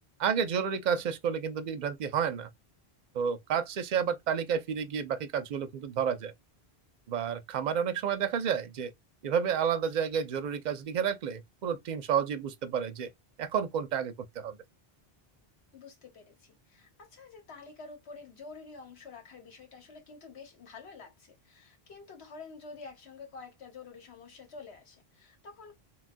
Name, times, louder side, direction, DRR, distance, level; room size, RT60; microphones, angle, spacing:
voice 1, 0.2-2.5 3.1-6.3 7.1-8.9 9.2-13.1 13.4-14.6, right 7 dB, 55° right, 0.6 m, -30 dB
voice 2, 15.7-25.8, left 4 dB, 85° left, 1.3 m, -49 dB
3.5 x 2.3 x 2.5 m
omnidirectional pair, 1.1 m